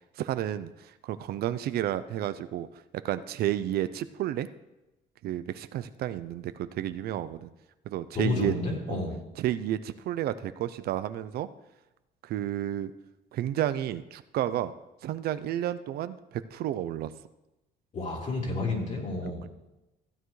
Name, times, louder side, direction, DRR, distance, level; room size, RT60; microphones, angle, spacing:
voice 1, 0.2-2.7 3.0-4.5 5.2-7.5 7.9-8.5 8.9-9.0 9.4-11.5 12.2-12.9 13.3-14.7 15.0-17.1, right 12 dB, 65° right, 13 dB, 0.5 m, -31 dB
voice 2, 8.1-9.2 17.9-19.5, left 3 dB, 45° left, -2 dB, 3.8 m, -30 dB
15.5 x 9.1 x 3.2 m, 0.97 s
cardioid pair, 110°, 17 cm